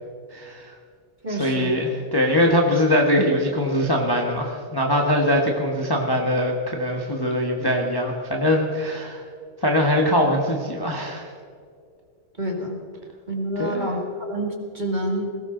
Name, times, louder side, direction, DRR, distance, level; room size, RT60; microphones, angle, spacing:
voice 1, 0.3-0.7 1.3-9.2 9.6-11.3 13.6-13.9, left 1 dB, 15° left, 0 dB, 1.2 m, -22 dB
voice 2, 1.2-1.7 12.4-12.8 13.3-14.0 14.3-15.3, right 1 dB, 20° right, 1 dB, 2.1 m, -27 dB
20.5 x 17.5 x 3.9 m, 2.3 s
omnidirectional pair, 2.2 m